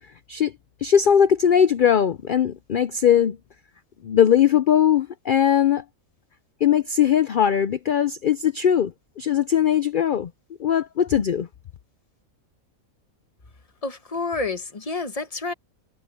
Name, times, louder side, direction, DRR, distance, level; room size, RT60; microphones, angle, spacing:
voice 1, 0.8-3.4 4.0-5.8 6.6-10.3 10.6-11.5, left 9 dB, 90° left, 0.4 m, -20 dB
voice 2, 13.8-15.5, left 3 dB, 25° left, 1.2 m, -29 dB
omnidirectional pair, 1.5 m